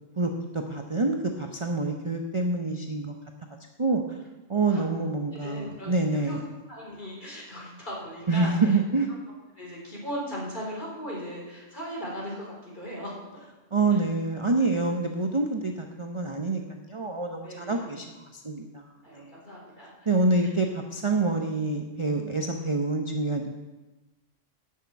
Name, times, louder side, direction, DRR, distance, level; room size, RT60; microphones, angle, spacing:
voice 1, 0.2-3.1 3.8-4.2 4.5-6.4 8.3-9.1 13.7-18.1 18.3-19.3 20.1-23.5, right 3 dB, 30° right, 3 dB, 0.8 m, -27 dB
voice 2, 5.4-6.4 6.7-8.6 9.6-13.2 17.4-17.9 19.0-19.9, equal, 40° left, -4 dB, 4.2 m, -38 dB
10.5 x 6.6 x 8.6 m, 1.1 s
omnidirectional pair, 1.3 m